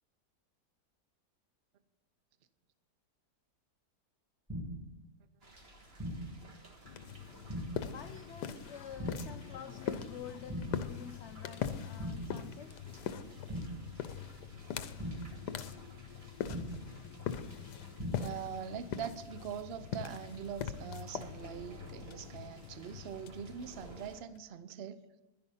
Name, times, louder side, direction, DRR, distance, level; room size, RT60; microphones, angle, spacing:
sound 1, 4.5-5.0 6.0-6.5 7.5-8.0 9.0-9.5 10.5-11.0 12.0-12.5 13.5-14.0 15.0-15.5 16.5-17.0 18.0-18.5, equal, 10° right, 1.5 m, -40 dB
sound 2, 5.4-24.2, right 1 dB, 40° right, 1.7 m, -56 dB
sound 3, 6.8-24.4, left 8 dB, 80° left, 1.3 m, -42 dB
voice 1, 7.8-12.7, left 8 dB, 65° left, 0.7 m, -48 dB
voice 2, 18.1-25.0, right 8 dB, 55° right, 0.7 m, -43 dB
11.5 x 10.5 x 5.6 m
omnidirectional pair, 1.8 m